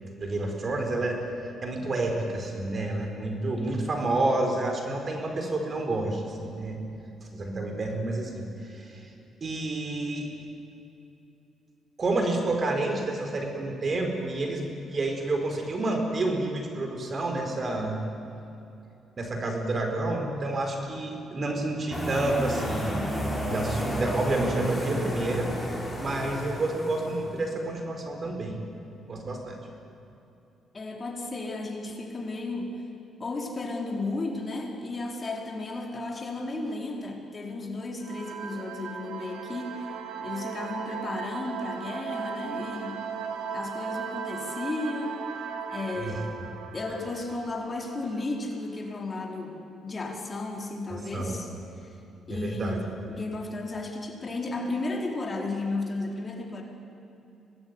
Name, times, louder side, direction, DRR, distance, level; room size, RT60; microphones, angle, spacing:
voice 1, 0.2-1.2 1.6-6.8 7.3-9.1 9.4-10.3 12.0-18.0 19.2-23.1 23.5-25.5 26.0-28.6 29.0-29.6 46.0-46.2 51.1-51.4 52.3-52.8, right 2 dB, 40° right, 3 dB, 4.6 m, -29 dB
sound 1, 21.9-27.4, equal, ahead, 6.0 m, -31 dB
voice 2, 30.7-32.9 33.2-39.9 40.2-43.1 43.5-45.2 45.7-46.3 46.7-51.5 51.8-52.0 52.3-56.6, left 2 dB, 30° left, 1 dB, 4.2 m, -34 dB
sound 2, 38.0-48.4, right 6 dB, 90° right, 2.0 m, -37 dB
24.5 x 19.5 x 9.7 m, 2.8 s
cardioid pair, 90°, 0 cm